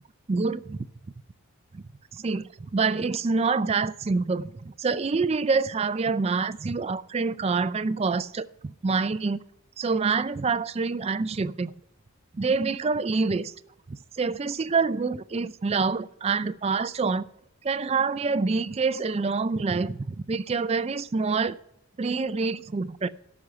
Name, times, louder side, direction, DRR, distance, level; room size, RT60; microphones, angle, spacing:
voice 1, 0.3-0.8 1.7-1.8 2.1-9.4 9.8-11.7 12.3-13.5 13.9-17.3 17.6-21.6 22.0-23.1, right 4 dB, 25° right, 14 dB, 0.3 m, -26 dB
12.0 x 6.2 x 6.6 m, 0.81 s
head